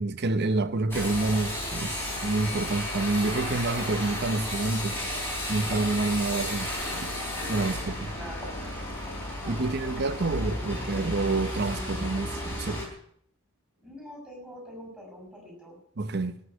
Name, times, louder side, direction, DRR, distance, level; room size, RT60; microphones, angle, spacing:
voice 1, 0.0-5.0 5.5-7.1 7.5-8.1 9.5-12.9 16.0-16.4, right 3 dB, 50° right, 0.8 m, -28 dB
sound 1, 0.9-12.9, left 1 dB, 10° left, 4.0 m, -33 dB
voice 2, 8.1-8.9 9.4-10.8 13.8-15.8, equal, 5° right, 6.3 m, -45 dB
18.0 x 6.5 x 8.8 m
head